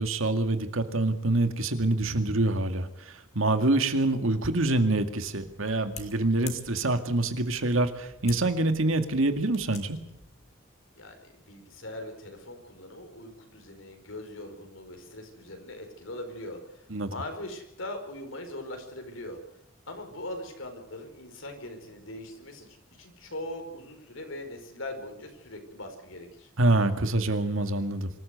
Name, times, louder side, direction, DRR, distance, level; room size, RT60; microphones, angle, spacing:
voice 1, 0.0-10.0 16.9-17.1 26.6-28.1, right 2 dB, 85° right, 8 dB, 2.1 m, -26 dB
sound 1, 5.2-10.5, left 6 dB, 30° left, 2.6 m, -48 dB
voice 2, 10.9-19.4 19.9-26.5, left 1 dB, 80° left, 5 dB, 4.9 m, -41 dB
25.0 x 14.0 x 8.1 m, 0.83 s
head